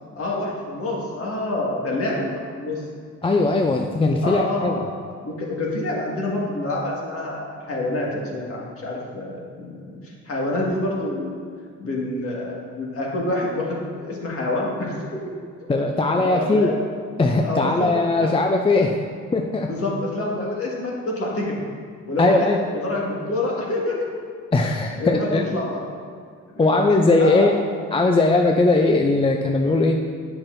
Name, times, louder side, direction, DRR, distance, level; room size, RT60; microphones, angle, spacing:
voice 1, 0.2-2.8 4.2-4.9 5.2-11.4 11.8-15.1 16.1-16.8 17.4-17.9 19.7-21.6 22.0-22.5 22.8-24.1 25.0-25.8 26.5-26.7 27.0-27.5, left 2 dB, 50° left, -3 dB, 1.8 m, -27 dB
voice 2, 3.2-4.8 15.7-16.7 17.2-19.0 19.3-19.7 22.2-22.6 24.5-25.4 26.6-27.5 27.9-30.0, left 2 dB, 20° left, 3 dB, 0.4 m, -19 dB
8.9 x 5.8 x 2.6 m, 2.1 s
cardioid pair, 90°, 30 cm